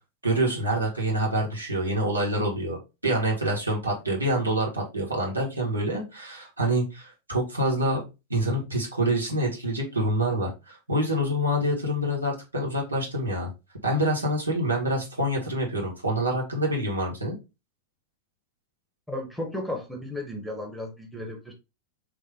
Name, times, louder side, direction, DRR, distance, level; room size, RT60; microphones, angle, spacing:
voice 1, 0.2-8.0 8.3-13.5 13.8-17.4, right 1 dB, 80° right, 1.4 m, -26 dB
voice 2, 19.1-21.5, left 1 dB, ahead, 1.0 m, -34 dB
3.5 x 2.9 x 3.4 m
figure-of-eight pair, 90°, 0 cm